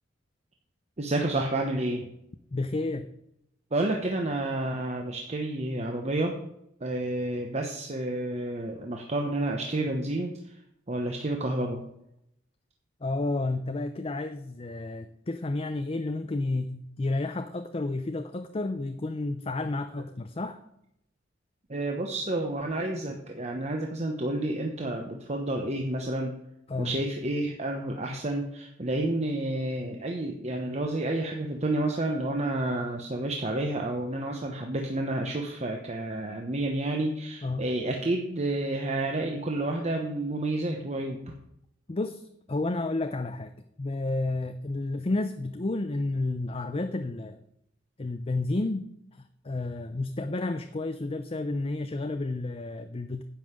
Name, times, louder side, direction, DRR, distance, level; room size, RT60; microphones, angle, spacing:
voice 1, 1.0-2.1 3.7-6.3 6.8-10.6 10.9-11.8 21.7-26.4 26.8-41.3, right 1 dB, 35° right, 2 dB, 1.1 m, -30 dB
voice 2, 2.5-3.1 13.0-20.6 26.7-26.9 37.4-37.7 41.9-43.5 43.8-47.4 48.0-53.2, left 2 dB, 30° left, 9 dB, 0.6 m, -31 dB
10.0 x 5.6 x 8.2 m, 0.78 s
head